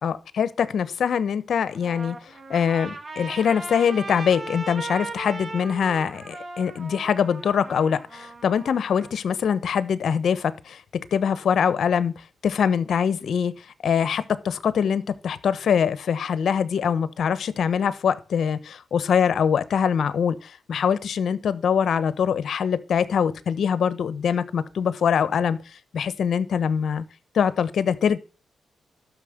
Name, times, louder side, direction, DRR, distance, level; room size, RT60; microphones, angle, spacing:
voice 1, 0.0-2.2 2.5-10.8 11.1-12.1 12.4-13.5 13.8-25.6 25.9-27.0 27.3-28.2, left 7 dB, 70° left, 15 dB, 1.1 m, -23 dB
Trumpet, 1.7-9.1, right 3 dB, 40° right, 2.4 m, -38 dB
12.0 x 6.6 x 6.6 m, 0.33 s
cardioid pair, 65°, 0 cm